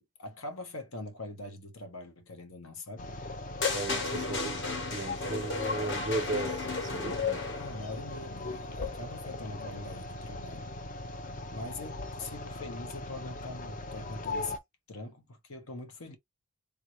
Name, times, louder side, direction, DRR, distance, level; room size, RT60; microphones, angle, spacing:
voice 1, 0.0-3.1 7.5-10.7 11.2-14.6 14.9-16.2, left 2 dB, 80° left, 1.0 m, -43 dB
sound 1, 3.0-14.6, left 4 dB, 35° left, 0.5 m, -38 dB
sound 2, 3.6-7.9, left 3 dB, 55° left, 1.1 m, -35 dB
voice 2, 3.7-7.4, right 3 dB, 35° right, 0.4 m, -36 dB
3.6 x 2.6 x 3.0 m
head